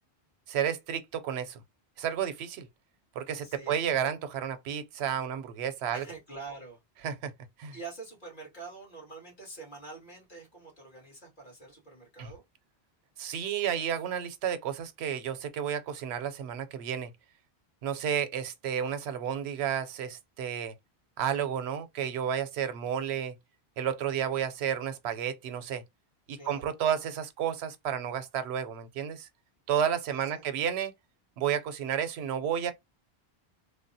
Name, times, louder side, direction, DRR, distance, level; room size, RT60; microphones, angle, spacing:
voice 1, 0.5-1.6 2.0-2.7 3.2-6.0 7.0-7.3 7.6-7.7 12.2-12.3 13.2-17.1 17.8-20.7 21.2-23.3 23.8-25.8 26.3-29.3 29.7-30.9 31.4-32.7, right 8 dB, 85° right, 0.8 m, -31 dB
voice 2, 3.4-3.8 5.9-6.8 7.7-12.4 26.4-26.7 30.1-30.4, right 3 dB, 50° left, 1.8 m, -46 dB
3.4 x 2.1 x 2.6 m
omnidirectional pair, 1.1 m